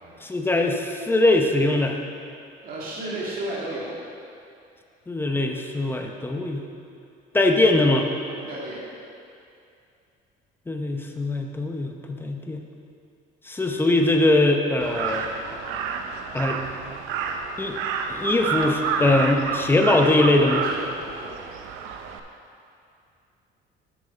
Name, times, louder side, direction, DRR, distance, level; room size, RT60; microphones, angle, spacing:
voice 1, 0.2-2.0 5.1-6.6 7.3-8.1 10.7-12.6 13.5-15.3 16.3-16.6 17.6-17.8 18.1-20.6, left 2 dB, 10° left, 3 dB, 0.7 m, -21 dB
voice 2, 2.6-3.9 8.3-8.8 20.3-21.3, right 1 dB, 45° right, -6 dB, 2.2 m, -34 dB
Crow, 14.8-22.2, right 5 dB, 85° right, 0.7 m, -30 dB
9.0 x 6.0 x 5.2 m, 2.5 s
cardioid pair, 120°, 20 cm